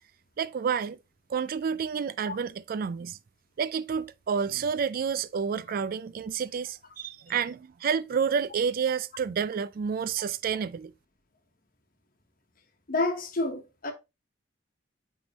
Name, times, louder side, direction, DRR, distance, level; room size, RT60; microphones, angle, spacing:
voice 1, 0.4-1.0 1.3-3.2 3.6-10.9, right 6 dB, 45° right, 0.3 m, -29 dB
voice 2, 12.9-13.9, left 2 dB, 45° left, 1.1 m, -29 dB
9.1 x 3.6 x 2.9 m
head